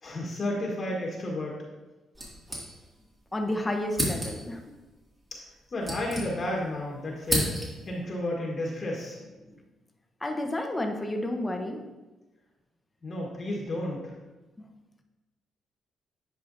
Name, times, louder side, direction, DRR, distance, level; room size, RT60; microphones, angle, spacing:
voice 1, 0.0-1.6 5.7-7.5 7.9-9.5 13.0-14.1, left 1 dB, 40° left, -3 dB, 1.5 m, -32 dB
sound 1, 2.1-3.2 3.4-3.5 3.9-4.6 5.4-6.7 7.0-8.0, equal, 20° right, 2.3 m, -32 dB
voice 2, 3.3-4.6 10.2-11.8, left 1 dB, 15° left, 3 dB, 1.0 m, -31 dB
10.0 x 4.8 x 2.7 m, 1.1 s
cardioid pair, 90°, 0 cm